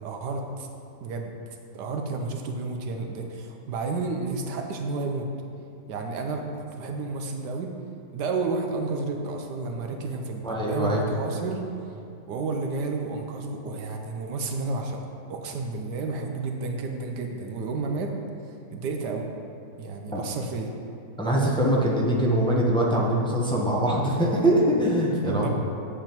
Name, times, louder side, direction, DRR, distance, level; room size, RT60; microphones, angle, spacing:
voice 1, 0.0-0.7 1.0-1.3 1.7-5.3 5.9-6.5 6.8-7.7 8.1-11.6 12.3-15.0 15.3-18.2 18.7-19.3 19.8-20.7 25.3-25.5, right 3 dB, 75° right, 3 dB, 1.3 m, -31 dB
voice 2, 10.4-11.0 20.1-20.2 21.2-25.5, right 1 dB, 5° left, -3 dB, 0.7 m, -23 dB
8.8 x 7.4 x 4.5 m, 2.7 s
omnidirectional pair, 1.8 m